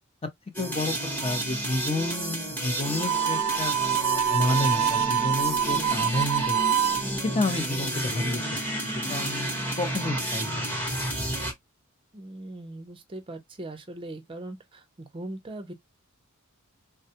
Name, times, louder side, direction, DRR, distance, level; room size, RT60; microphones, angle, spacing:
sound 1, 0.5-11.5, right 1 dB, 10° left, 0.9 m, -31 dB
voice 1, 0.6-0.9 1.2-3.7 4.3-6.6 7.1-9.5 9.7-10.5, left 1 dB, 25° left, 0.5 m, -30 dB
Harmonica, 3.0-7.0, right 9 dB, 80° right, 0.3 m, -25 dB
voice 2, 5.7-6.1 12.1-15.7, right 2 dB, 25° right, 0.5 m, -40 dB
3.3 x 2.2 x 2.7 m
head